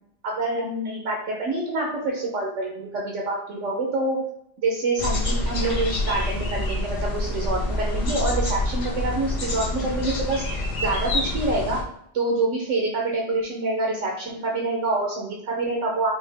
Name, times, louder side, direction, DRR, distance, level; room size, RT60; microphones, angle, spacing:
voice 1, 0.2-4.2 4.6-11.8 12.1-16.1, right 2 dB, 75° right, -2 dB, 1.1 m, -26 dB
sound 1, 5.0-11.8, left 1 dB, 55° left, 1.1 m, -27 dB
4.8 x 2.3 x 3.4 m, 0.74 s
omnidirectional pair, 1.3 m